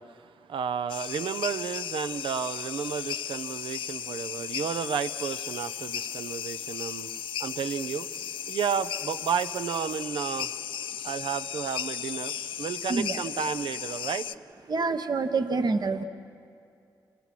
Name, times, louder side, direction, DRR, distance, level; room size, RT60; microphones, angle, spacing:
voice 1, 0.0-8.1 8.5-10.5 11.0-14.3, right 7 dB, 80° right, 12 dB, 0.6 m, -32 dB
sound 1, 0.9-14.3, left 9 dB, 85° left, 0.4 m, -35 dB
voice 2, 12.9-13.2 14.7-16.0, right 4 dB, 55° right, 8 dB, 1.1 m, -27 dB
28.0 x 20.0 x 6.1 m, 2.5 s
cardioid pair, 50°, 9 cm